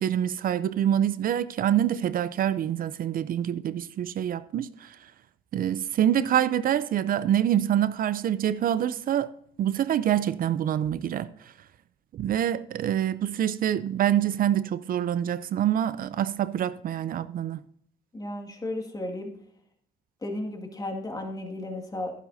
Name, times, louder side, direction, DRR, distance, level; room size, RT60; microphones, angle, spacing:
voice 1, 0.0-4.9 5.5-9.3 9.6-11.3 12.1-17.6, right 10 dB, 55° right, 0.5 m, -26 dB
voice 2, 18.1-19.3 20.2-22.1, left 1 dB, 20° left, 2.0 m, -34 dB
11.5 x 10.5 x 2.7 m
cardioid pair, 100°, 17 cm